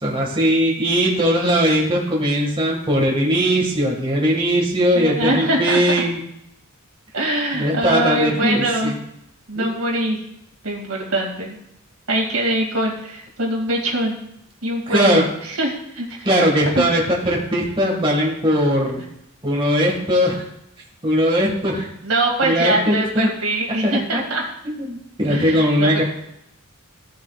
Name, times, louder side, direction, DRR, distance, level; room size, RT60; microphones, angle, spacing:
voice 1, 0.0-6.2 7.5-9.0 9.6-9.7 14.9-15.2 16.3-19.0 19.4-20.4 21.0-21.9 22.4-23.3 24.1-24.2 24.8-26.0, equal, 25° right, -2 dB, 1.8 m, -19 dB
voice 2, 4.9-5.8 7.1-8.9 9.5-10.2 10.6-11.6 12.1-14.2 14.6-16.3 16.7-16.9 22.0-24.4 25.3-26.0, right 1 dB, 75° right, 0 dB, 2.3 m, -23 dB
15.0 x 7.4 x 2.4 m, 0.79 s
head